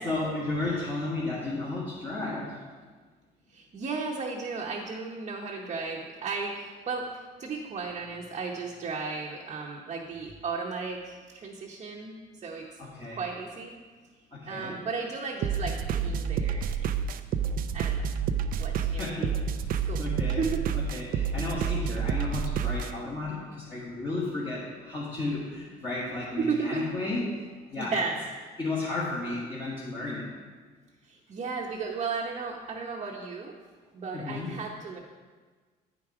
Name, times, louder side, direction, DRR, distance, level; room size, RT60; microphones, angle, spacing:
voice 1, 0.0-2.6 12.8-13.2 14.3-14.7 19.0-19.6 20.0-20.4 20.7-28.0 28.6-30.3 34.1-34.5, left 2 dB, 30° left, -7 dB, 1.7 m, -33 dB
voice 2, 3.5-12.7 13.2-13.8 14.4-16.9 17.7-18.1 18.6-19.4 19.9-20.7 26.4-26.8 27.8-28.2 31.0-33.6 33.9-35.0, right 4 dB, 40° right, -2 dB, 0.9 m, -34 dB
sound 1, 15.4-22.9, right 7 dB, 60° right, 0.4 m, -29 dB
9.1 x 4.9 x 4.8 m, 1.4 s
cardioid pair, 110°, 17 cm